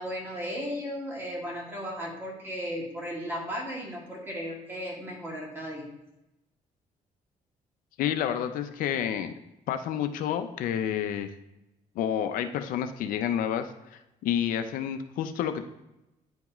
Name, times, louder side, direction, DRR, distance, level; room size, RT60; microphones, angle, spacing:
voice 1, 0.0-5.9, equal, 15° right, -4 dB, 2.3 m, -35 dB
voice 2, 8.0-9.3 9.7-11.3 12.0-15.6, left 9 dB, 90° left, 8 dB, 0.5 m, -29 dB
9.5 x 3.6 x 3.0 m, 0.91 s
cardioid pair, 120°, 14 cm